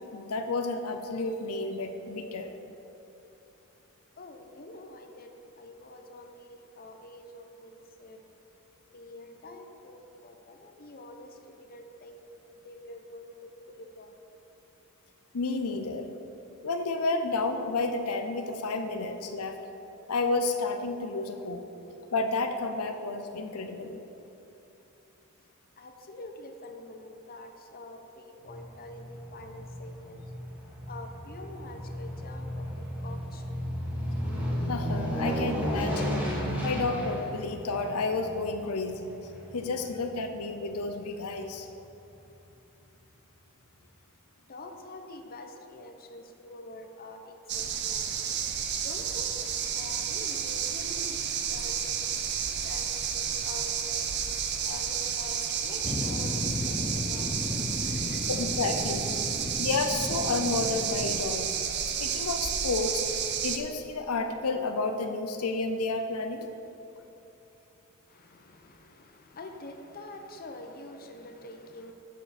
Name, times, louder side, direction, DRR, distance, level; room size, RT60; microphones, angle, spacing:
voice 1, 0.1-2.5 15.3-16.1 16.6-19.6 20.1-21.6 22.1-24.0 34.7-36.2 36.6-39.1 39.5-41.7 58.3-59.1 59.6-61.5 62.0-63.0 63.4-66.5, left 3 dB, 85° left, 6 dB, 0.6 m, -31 dB
voice 2, 4.2-5.3 5.6-8.2 8.9-11.3 11.7-12.2 12.6-13.3 13.7-14.1 25.8-30.2 30.9-32.6 33.0-33.4 44.5-48.1 48.8-49.3 49.7-52.1 52.6-54.1 54.6-56.4 56.6-58.3 68.1-71.9, left 1 dB, 45° left, 4 dB, 0.8 m, -46 dB
Aircraft, 28.4-40.9 41.4-41.5, equal, 10° right, 2.2 m, -34 dB
sound 1, 47.5-63.6, right 8 dB, 50° right, 0.7 m, -31 dB
sound 2, 55.8-61.2, left 2 dB, 20° left, 0.3 m, -34 dB
12.0 x 7.3 x 4.2 m, 3.0 s
head